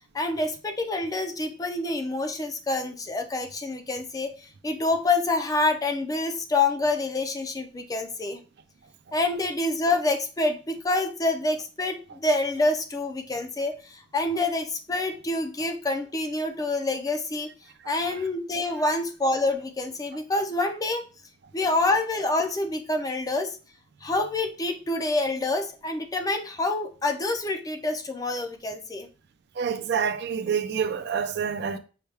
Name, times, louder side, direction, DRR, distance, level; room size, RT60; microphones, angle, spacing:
voice 1, 0.1-8.4 9.1-17.5 17.9-21.1 21.5-23.6 24.0-29.1, left 2 dB, 20° left, 0.4 m, -27 dB
voice 2, 29.6-31.8, right 7 dB, 60° right, 0.4 m, -27 dB
5.6 x 2.2 x 3.3 m
head